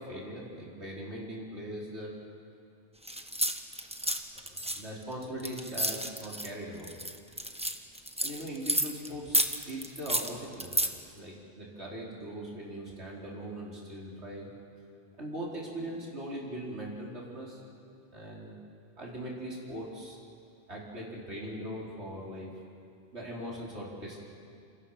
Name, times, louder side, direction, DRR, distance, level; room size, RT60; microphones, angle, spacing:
voice 1, 0.0-2.1 4.4-6.9 8.2-9.4 9.7-10.9 11.1-14.5 15.2-17.6 18.1-18.6 19.0-20.2 20.7-22.6 23.1-24.2, right 1 dB, 80° right, -4 dB, 4.9 m, -40 dB
sound 1, 3.1-6.5 6.8-9.1 9.3-10.9, right 1 dB, 5° right, 1.2 m, -31 dB
28.0 x 28.0 x 5.8 m, 2.4 s
omnidirectional pair, 1.1 m